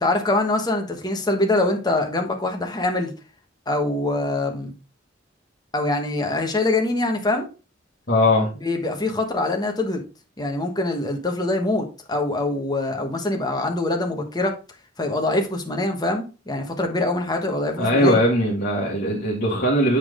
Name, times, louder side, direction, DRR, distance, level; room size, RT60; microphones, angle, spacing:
voice 1, 0.0-3.1 3.7-4.7 5.7-7.5 8.6-10.0 10.4-14.6 15.0-18.2, left 2 dB, 20° left, 1.3 m, -24 dB
voice 2, 8.1-8.5 17.8-20.0, left 1 dB, 55° left, 1.7 m, -20 dB
8.2 x 4.4 x 3.7 m
head